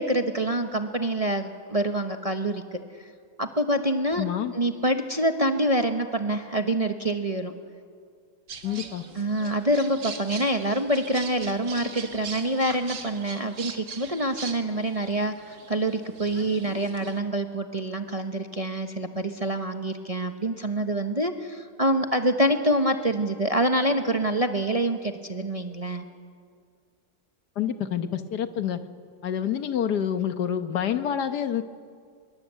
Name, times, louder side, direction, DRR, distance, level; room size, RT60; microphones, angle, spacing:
voice 1, 0.0-2.8 3.4-4.2 4.5-7.5 9.1-26.0, right 1 dB, 25° right, 5 dB, 1.0 m, -26 dB
voice 2, 4.2-4.5 8.6-9.0 27.6-28.8 29.2-31.6, left 9 dB, 75° left, 10 dB, 1.6 m, -27 dB
sound 1, 8.5-17.2, right 5 dB, 85° right, 2.3 m, -41 dB
24.0 x 22.5 x 8.2 m, 2.1 s
omnidirectional pair, 1.8 m